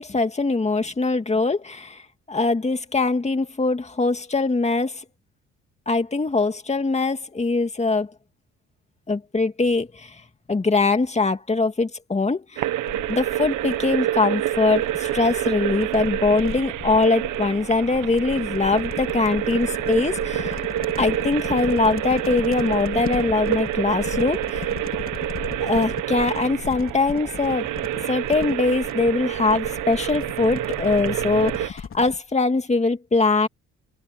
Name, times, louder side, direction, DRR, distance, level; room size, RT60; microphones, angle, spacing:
voice 1, 0.0-2.0 2.3-5.0 5.9-8.1 9.1-10.2 10.5-12.6 13.1-20.6 21.0-24.7 25.6-27.7 28.1-33.5, left 3 dB, 20° left, 2.3 m, -22 dB
sound 1, 12.6-31.7, right 13 dB, 85° right, 1.3 m, -28 dB
sound 2, 12.9-32.2, left 7 dB, 45° left, 3.1 m, -36 dB
cardioid pair, 90°, 30 cm